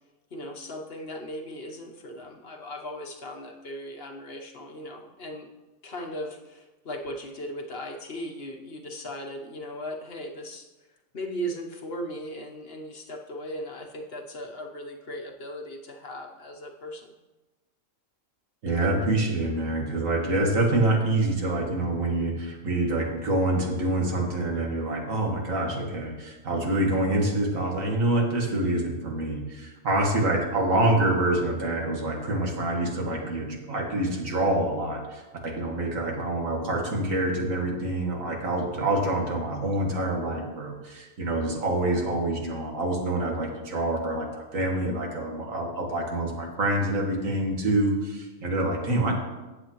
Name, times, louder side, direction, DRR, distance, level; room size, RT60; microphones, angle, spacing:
voice 1, 0.3-5.5 5.8-10.7 11.1-17.1, equal, 50° left, 2 dB, 1.1 m, -37 dB
voice 2, 18.6-49.1, right 1 dB, 80° right, 0 dB, 2.1 m, -26 dB
14.0 x 8.7 x 3.0 m, 1.1 s
omnidirectional pair, 1.4 m